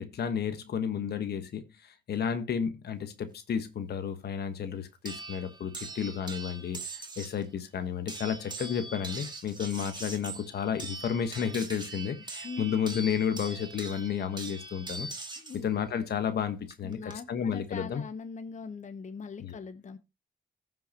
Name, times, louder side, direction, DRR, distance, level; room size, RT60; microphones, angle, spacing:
voice 1, 0.0-6.8 7.2-15.1 15.6-17.0 17.3-18.0 19.4-19.6, left 7 dB, 75° left, 1.3 m, -32 dB
sound 1, 5.1-7.4 8.1-15.6 16.7-17.1, right 3 dB, 25° right, 2.2 m, -42 dB
voice 2, 12.2-12.8 15.4-15.7 16.8-20.0, left 5 dB, 45° left, 0.9 m, -41 dB
15.0 x 5.7 x 2.9 m
supercardioid pair, 55°, 17 cm